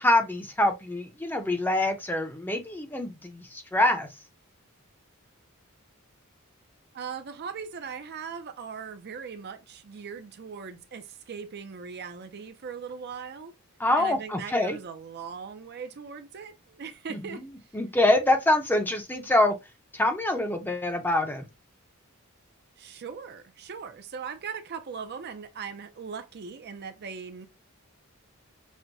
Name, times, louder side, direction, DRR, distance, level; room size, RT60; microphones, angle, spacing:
voice 1, 0.0-4.1 13.8-14.8 17.1-17.4 17.7-19.5 19.9-21.5, left 1 dB, 10° left, 0.6 m, -25 dB
voice 2, 6.9-13.5 14.0-17.4 22.8-27.5, right 6 dB, 50° right, 0.5 m, -39 dB
6.0 x 2.1 x 2.6 m
head